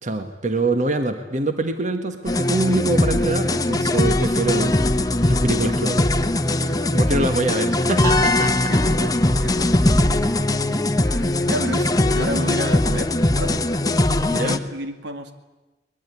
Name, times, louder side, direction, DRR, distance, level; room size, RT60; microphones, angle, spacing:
voice 1, 0.0-6.1 6.9-8.7 14.3-14.6, right 2 dB, 45° right, 7 dB, 1.6 m, -24 dB
sound 1, 2.3-14.6, left 1 dB, 20° left, 1.0 m, -20 dB
voice 2, 6.5-7.1 8.7-10.7 11.1-13.7 14.2-15.3, equal, 75° right, 8 dB, 2.4 m, -32 dB
22.5 x 21.0 x 9.8 m, 1.1 s
head